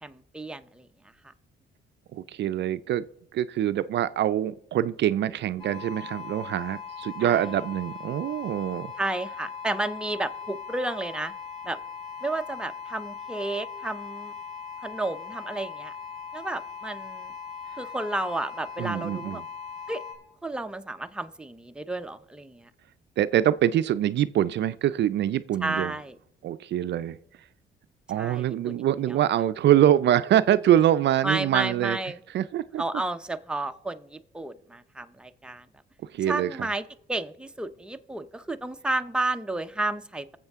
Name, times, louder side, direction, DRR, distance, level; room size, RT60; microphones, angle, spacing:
voice 1, 0.0-0.9 7.2-7.5 9.0-11.3 11.6-11.8 12.2-14.3 14.8-15.9 16.3-17.3 17.8-19.4 19.9-20.0 20.4-22.7 25.6-26.1 28.1-29.2 31.2-32.2 32.8-35.7 36.3-36.8 37.1-40.3, right 2 dB, 5° right, 0.6 m, -32 dB
voice 2, 2.1-3.0 3.3-8.9 18.8-19.4 23.2-25.9 26.4-27.2 28.1-32.0 32.3-32.8 36.1-36.7, right 11 dB, 60° right, 0.4 m, -24 dB
sound 1, 5.6-20.1, left 6 dB, 85° left, 5.9 m, -39 dB
20.5 x 7.3 x 3.5 m
cardioid pair, 90°, 20 cm